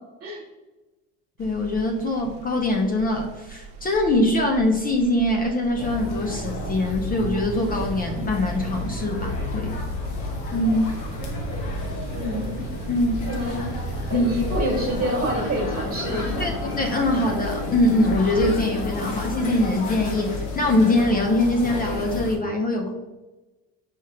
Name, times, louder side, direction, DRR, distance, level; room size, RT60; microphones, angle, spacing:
voice 1, 1.4-9.8 10.5-11.0 12.9-13.2 14.1-14.3 16.4-16.5 16.8-22.9, left 1 dB, 25° left, 3 dB, 0.4 m, -23 dB
sound 1, 1.4-15.2, right 5 dB, 90° right, 0.7 m, -40 dB
sound 2, 5.8-22.4, left 2 dB, 85° left, 1.1 m, -31 dB
voice 2, 12.1-12.6 13.3-13.8 14.1-16.5, equal, 35° right, -4 dB, 1.3 m, -27 dB
Bowed string instrument, 15.9-20.3, left 3 dB, ahead, 0.8 m, -39 dB
4.9 x 3.1 x 2.8 m, 1.1 s
cardioid pair, 130°, 37 cm